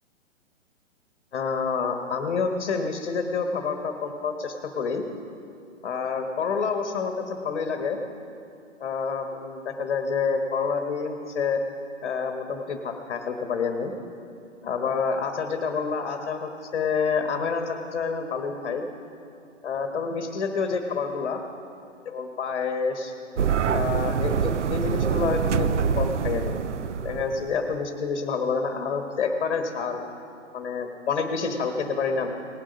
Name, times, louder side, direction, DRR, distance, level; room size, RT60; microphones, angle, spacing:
voice 1, 1.3-5.0 5.8-8.0 8.8-11.6 12.0-13.9 14.6-18.8 19.6-21.4 22.0-23.1 23.7-26.5 27.0-30.0 30.5-32.3, left 5 dB, 50° left, 5 dB, 1.2 m, -28 dB
sound 1, 23.4-27.6, right 7 dB, 70° right, 0.7 m, -25 dB
19.0 x 7.5 x 5.2 m, 2.6 s
figure-of-eight pair, 125°, 37 cm